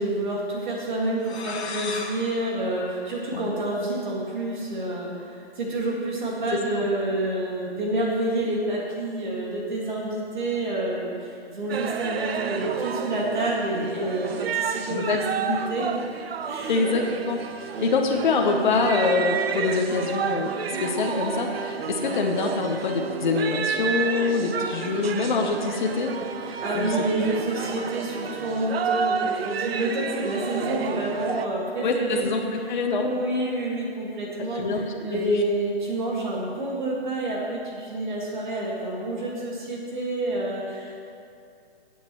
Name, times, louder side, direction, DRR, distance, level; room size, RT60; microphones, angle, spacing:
voice 1, 0.0-15.9 16.5-17.0 26.4-32.3 32.9-40.9, right 1 dB, 45° right, -3 dB, 1.9 m, -28 dB
sound 1, 1.2-3.8, left 4 dB, 80° left, 1.5 m, -37 dB
voice 2, 6.5-6.9 14.9-15.2 15.5-15.7 16.7-20.5 20.8-26.1 26.7-27.1 27.6-27.8 31.8-33.1 34.5-34.8 35.1-35.4, left 4 dB, 45° left, 2 dB, 0.9 m, -25 dB
sound 2, 11.7-31.5, right 6 dB, 65° right, 0.6 m, -30 dB
15.0 x 8.3 x 3.0 m, 2.4 s
hypercardioid pair, 170°, 33 cm